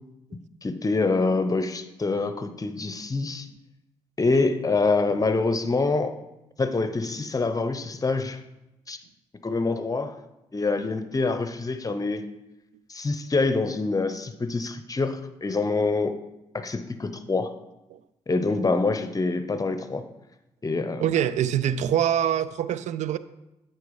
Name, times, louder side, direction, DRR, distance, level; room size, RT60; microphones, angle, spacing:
voice 1, 0.6-3.5 4.2-6.2 6.6-8.4 8.9-9.0 9.4-10.1 10.5-12.2 12.9-16.1 16.5-17.5 18.3-20.0 20.6-21.0, left 3 dB, 30° left, 10 dB, 0.8 m, -25 dB
voice 2, 21.0-23.2, right 10 dB, 70° right, 15 dB, 0.4 m, -24 dB
8.4 x 4.5 x 4.8 m, 0.93 s
supercardioid pair, 55°, 12 cm